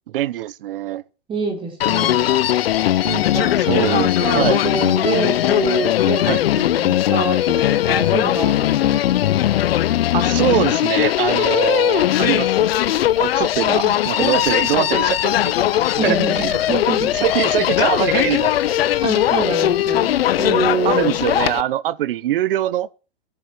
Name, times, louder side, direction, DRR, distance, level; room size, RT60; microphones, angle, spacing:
voice 1, 0.1-1.0 3.5-4.6 6.2-6.4 10.1-12.7 13.2-16.6 17.0-18.9 20.8-22.9, right 13 dB, 55° right, 0.9 m, -23 dB
voice 2, 1.3-2.3 3.0-3.6 3.9-9.0 13.6-14.0 16.0-17.2 19.0-21.1, right 4 dB, 15° right, 4.9 m, -26 dB
Human voice, 1.8-21.6, left 12 dB, 60° left, 0.9 m, -19 dB
22.5 x 11.0 x 4.7 m
hypercardioid pair, 150°, 34 cm